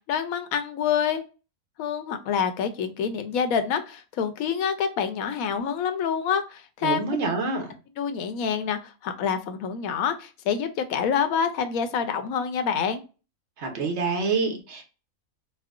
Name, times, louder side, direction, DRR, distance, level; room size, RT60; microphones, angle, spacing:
voice 1, 0.1-1.2 1.8-7.1 8.0-13.0, left 7 dB, 90° left, 1.0 m, -27 dB
voice 2, 6.8-7.7 13.6-14.8, right 4 dB, 60° right, 1.0 m, -27 dB
4.3 x 2.1 x 2.4 m
omnidirectional pair, 1.5 m